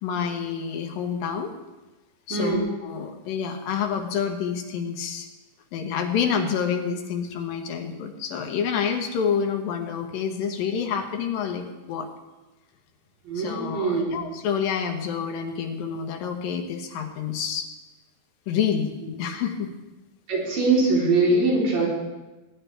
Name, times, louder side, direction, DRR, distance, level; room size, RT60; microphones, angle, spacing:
voice 1, 0.0-1.5 2.3-5.3 5.7-12.1 13.4-17.7 18.5-18.9 19.2-19.7, left 7 dB, 85° left, 4 dB, 2.9 m, -28 dB
voice 2, 2.3-2.6 13.3-14.1 20.3-21.9, right 3 dB, 75° right, -5 dB, 5.4 m, -22 dB
20.5 x 10.5 x 3.4 m, 1.1 s
omnidirectional pair, 4.0 m